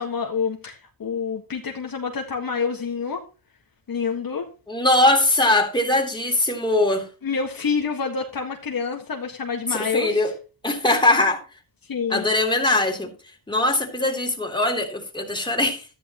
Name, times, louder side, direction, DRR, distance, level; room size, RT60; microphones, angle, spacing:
voice 1, 0.0-3.2 3.9-4.5 7.2-10.3 11.8-12.3, left 5 dB, 45° left, 1.8 m, -27 dB
voice 2, 4.7-7.1 9.7-10.3 10.6-11.4 12.1-13.1 13.5-15.9, left 2 dB, 10° left, 3.2 m, -21 dB
13.0 x 10.5 x 3.0 m
cardioid pair, 95°, 47 cm